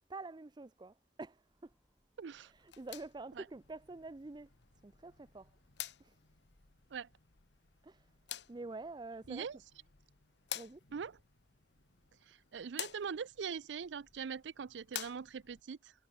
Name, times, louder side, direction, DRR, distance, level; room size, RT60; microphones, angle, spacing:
voice 1, 0.1-1.7 2.4-4.5 4.8-5.5 6.0-6.2 7.8-8.1 8.5-9.5 10.5-10.8, right 3 dB, 25° right, 0.4 m, -47 dB
Train, 1.2-6.9, equal, 5° left, 6.1 m, -78 dB
voice 2, 2.2-2.5 3.4-3.5 6.9-7.1 9.3-9.6 10.9-11.1 12.3-15.9, right 6 dB, 85° right, 0.5 m, -42 dB
sound 1, 2.6-15.6, left 11 dB, 75° left, 1.5 m, -50 dB
head